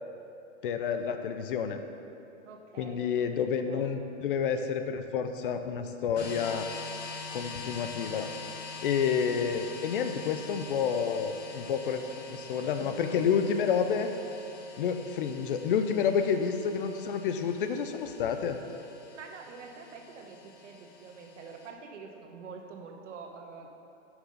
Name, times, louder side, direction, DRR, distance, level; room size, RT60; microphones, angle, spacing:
voice 1, 0.6-1.8 2.8-6.7 7.3-8.3 8.8-12.0 12.3-14.1 14.8-18.6, left 7 dB, 45° left, 8 dB, 0.5 m, -29 dB
voice 2, 2.4-3.1 3.4-4.0 9.3-9.5 11.8-13.2 16.2-16.4 19.1-23.7, right 5 dB, 70° right, 3 dB, 1.2 m, -47 dB
sound 1, 6.1-21.7, left 4 dB, 60° left, 1.7 m, -45 dB
7.3 x 6.0 x 5.4 m, 2.7 s
hypercardioid pair, 155°, 37 cm